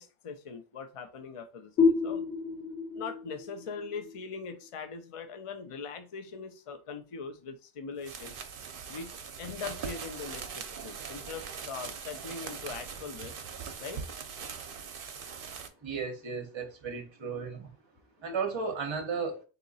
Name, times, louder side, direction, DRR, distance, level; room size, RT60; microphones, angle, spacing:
voice 1, 0.0-2.3 2.9-8.4 8.9-9.1 9.4-13.4 13.8-14.0, left 5 dB, 55° left, 0.3 m, -41 dB
sound 1, 1.8-5.2, left 4 dB, 80° left, 1.3 m, -30 dB
sound 2, 8.0-15.7, right 6 dB, 60° right, 0.8 m, -41 dB
voice 2, 15.8-17.7 18.2-19.4, right 5 dB, 30° right, 0.8 m, -34 dB
3.7 x 2.8 x 4.0 m
omnidirectional pair, 1.1 m